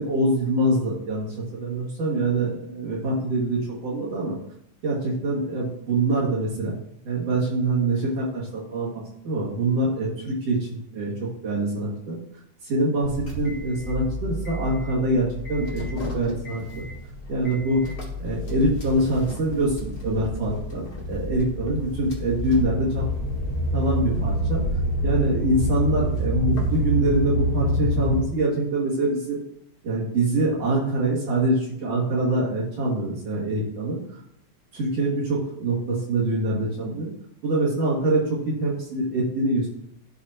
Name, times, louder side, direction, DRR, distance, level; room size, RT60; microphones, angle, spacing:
voice 1, 0.0-4.4 4.8-6.7 7.0-11.1 11.4-12.2 12.6-16.8 17.3-17.9 18.2-23.0 23.7-24.6 25.0-29.4 29.8-34.0 34.7-37.1 37.4-39.7, right 2 dB, 60° right, -6 dB, 3.0 m, -25 dB
sound 1, 13.0-28.2, equal, 35° left, 1.7 m, -28 dB
12.5 x 4.3 x 2.8 m, 0.74 s
omnidirectional pair, 3.5 m